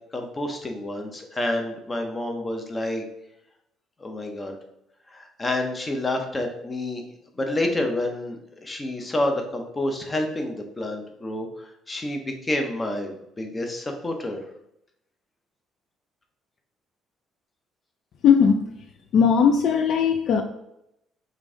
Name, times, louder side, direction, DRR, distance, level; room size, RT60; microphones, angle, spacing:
voice 1, 0.1-3.0 4.0-4.6 5.1-7.0 7.4-14.4, left 1 dB, 20° left, 4 dB, 0.6 m, -29 dB
voice 2, 18.2-18.6 19.1-20.4, left 6 dB, 55° left, 6 dB, 0.3 m, -18 dB
5.1 x 2.6 x 3.7 m, 0.81 s
cardioid pair, 140°, 0 cm